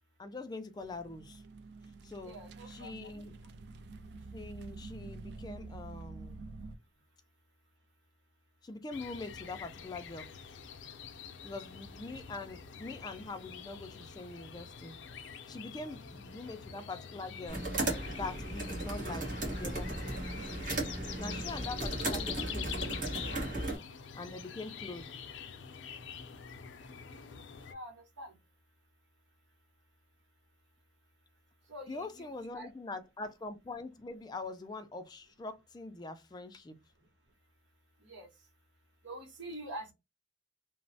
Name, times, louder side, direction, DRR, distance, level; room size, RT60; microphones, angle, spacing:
voice 1, 0.2-1.4 2.0-2.3 2.7-3.3 4.3-6.4 8.6-10.3 11.4-14.9 15.5-17.7 18.1-19.9 21.2-23.1 24.1-25.1 31.9-36.8, left 3 dB, 20° left, 0.3 m, -43 dB
sound 1, 0.8-6.8, right 3 dB, 65° right, 0.3 m, -48 dB
voice 2, 2.2-3.2 11.4-11.6 15.8-16.0 20.7-20.8 27.7-28.3 31.7-32.7 38.0-38.3 39.0-39.9, right 1 dB, 80° right, 0.9 m, -46 dB
sound 2, 8.9-27.7, left 7 dB, 85° left, 0.5 m, -46 dB
sound 3, 17.5-23.8, right 1 dB, 45° right, 1.1 m, -36 dB
3.0 x 2.0 x 2.7 m
head